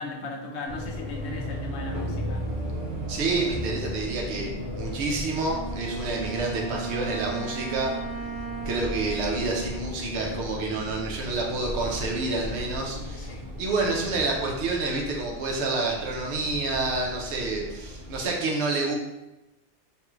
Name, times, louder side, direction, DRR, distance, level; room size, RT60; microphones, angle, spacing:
voice 1, 0.0-2.6 13.2-13.6, left 3 dB, 80° left, 0 dB, 0.9 m, -36 dB
sound 1, 0.7-18.3, equal, 35° right, 1.0 m, -36 dB
voice 2, 3.1-7.9 8.7-19.0, right 3 dB, 80° right, 0 dB, 0.9 m, -28 dB
Wind instrument woodwind instrument, 5.4-10.9, right 4 dB, 50° left, 0.4 m, -37 dB
3.0 x 2.3 x 3.1 m, 0.97 s
omnidirectional pair, 1.1 m